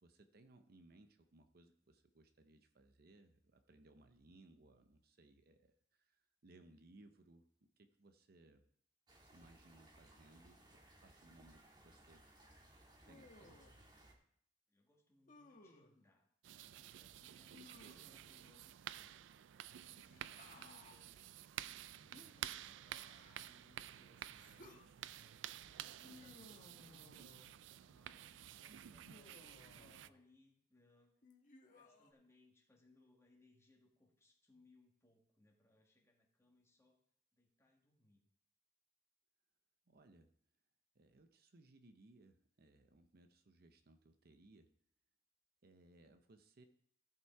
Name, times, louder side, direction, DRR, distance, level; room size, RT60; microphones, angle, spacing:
voice 1, 0.0-7.5 7.8-8.6 9.2-12.4 13.1-13.7 28.7-29.1 39.9-40.3 40.9-44.7 45.6-46.6, right 2 dB, 55° right, 8 dB, 0.7 m, -65 dB
sound 1, 9.1-14.1, right 1 dB, 25° right, 1.6 m, -64 dB
voice 2, 9.5-9.9 14.7-19.2 19.7-27.4 27.7-31.1 31.7-37.0 37.3-38.2, left 2 dB, 15° left, 0 dB, 2.0 m, -72 dB
Human voice, 13.0-13.9 15.3-16.0 17.5-18.3 19.9-21.0 22.1-23.6 24.3-24.9 26.0-27.6 29.0-30.2 31.2-32.1, left 2 dB, 45° left, 1.3 m, -62 dB
sound 2, 16.4-30.1, right 11 dB, 75° right, 0.3 m, -51 dB
14.5 x 5.8 x 4.6 m, 0.65 s
head